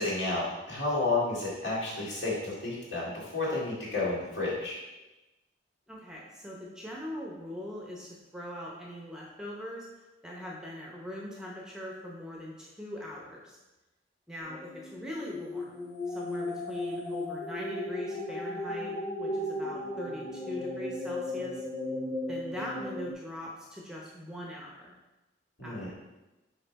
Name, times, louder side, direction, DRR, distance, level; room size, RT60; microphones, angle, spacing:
voice 1, 0.0-4.8 25.6-25.9, left 2 dB, 65° left, -6 dB, 2.3 m, -31 dB
voice 2, 5.9-9.9 10.2-13.6 14.3-15.8 16.1-21.6 22.3-24.9 25.6-25.9, left 1 dB, 5° right, -3 dB, 0.8 m, -41 dB
sound 1, 14.4-23.1, left 1 dB, 45° left, 2.0 m, -36 dB
5.7 x 4.8 x 4.1 m, 1.1 s
head